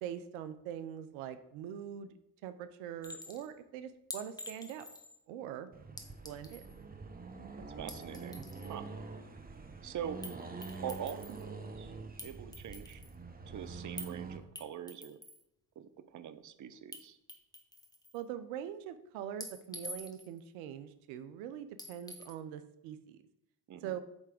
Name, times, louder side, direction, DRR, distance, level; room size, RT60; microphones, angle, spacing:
voice 1, 0.0-2.1 2.4-4.9 5.3-5.7 6.2-6.6 18.1-23.2 23.8-24.0, right 10 dB, 80° right, 11 dB, 0.6 m, -43 dB
Chink clink, 3.0-3.5 4.1-5.2 6.0-6.7 7.7-8.7 10.2-10.4 10.6-11.4 12.2-13.1 14.0-14.1 14.6-15.4 16.9-17.0 17.3-18.2 19.4-20.4 21.8-22.3, left 1 dB, 10° left, 1.0 m, -47 dB
Accelerating revving vroom, 5.7-14.4, right 4 dB, 20° right, 1.0 m, -46 dB
voice 2, 7.6-8.4 8.7-8.9 9.8-10.2 10.8-11.9 12.2-13.0 13.5-15.2 15.8-17.2 23.7-24.0, right 9 dB, 40° right, 11 dB, 0.7 m, -43 dB
8.1 x 3.3 x 5.1 m, 0.80 s
hypercardioid pair, 60°, 46 cm